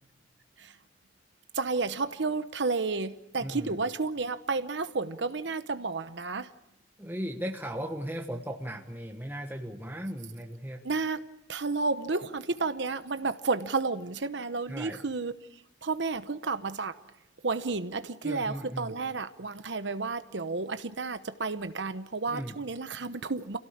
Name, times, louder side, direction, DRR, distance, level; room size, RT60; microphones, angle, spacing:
voice 1, 1.5-6.5 10.8-11.2 11.5-15.3 15.8-16.9 17.4-23.6, right 4 dB, 65° right, 11 dB, 0.9 m, -31 dB
voice 2, 3.4-3.8 7.0-10.8 14.7-15.0 18.2-19.0 22.3-22.6, equal, 10° right, 3 dB, 1.3 m, -37 dB
27.5 x 17.5 x 8.7 m, 0.85 s
head